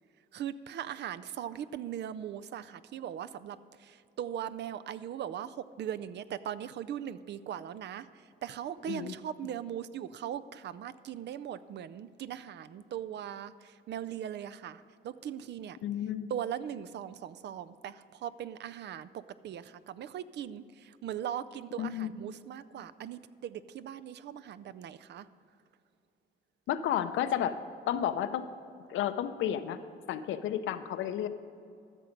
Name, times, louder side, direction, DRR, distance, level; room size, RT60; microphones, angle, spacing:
voice 1, 0.3-15.8 16.3-25.3, right 10 dB, 60° right, 14 dB, 0.4 m, -39 dB
voice 2, 15.8-16.3 21.8-22.1 26.7-27.5 27.9-28.5 28.9-29.8 30.1-31.3, left 10 dB, 80° left, 10 dB, 0.6 m, -31 dB
13.5 x 6.9 x 5.2 m, 2.5 s
cardioid pair, 90°, 20 cm